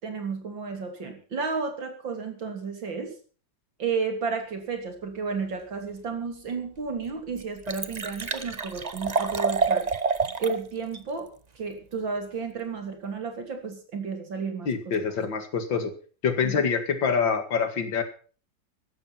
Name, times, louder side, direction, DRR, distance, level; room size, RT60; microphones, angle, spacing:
voice 1, 0.0-3.2 3.8-9.9 10.4-11.3 11.6-15.0 16.4-16.6, right 5 dB, 85° right, 5 dB, 3.9 m, -32 dB
Liquid, 6.5-6.6 7.0-7.1 7.3-10.6 10.9-11.0, right 4 dB, 30° right, 0.8 m, -28 dB
voice 2, 14.7-15.9 16.2-18.0, left 6 dB, 80° left, 8 dB, 2.8 m, -25 dB
15.5 x 12.5 x 5.8 m, 0.40 s
omnidirectional pair, 2.0 m